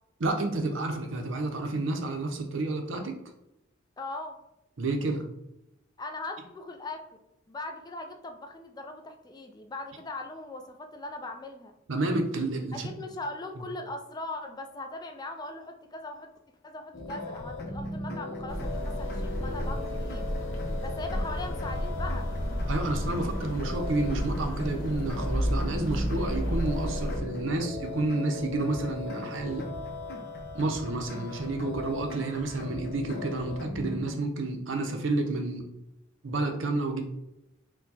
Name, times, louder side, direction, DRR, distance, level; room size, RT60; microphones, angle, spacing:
voice 1, 0.2-3.2 4.8-5.2 11.9-12.9 22.7-29.7 30.5-35.7 36.2-37.0, right 2 dB, 70° right, 4 dB, 0.7 m, -30 dB
voice 2, 4.0-4.4 6.0-11.7 12.7-16.3 16.6-20.3 20.8-22.3, left 2 dB, 20° left, 5 dB, 0.3 m, -40 dB
sound 1, 16.9-34.0, left 2 dB, 55° left, 0.8 m, -38 dB
sound 2, 18.5-27.2, equal, 85° left, 0.9 m, -32 dB
4.5 x 2.2 x 4.1 m, 0.88 s
head